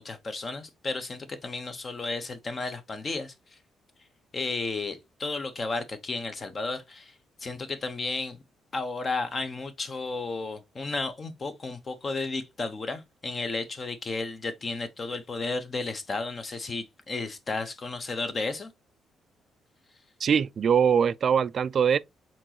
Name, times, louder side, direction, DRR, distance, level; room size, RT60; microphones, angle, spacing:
voice 1, 0.0-3.3 4.3-7.1 7.4-8.4 8.7-18.7, left 3 dB, 40° left, 1.0 m, -33 dB
voice 2, 20.2-22.0, right 7 dB, 50° right, 0.3 m, -22 dB
4.5 x 3.9 x 2.9 m
cardioid pair, 90°, 0 cm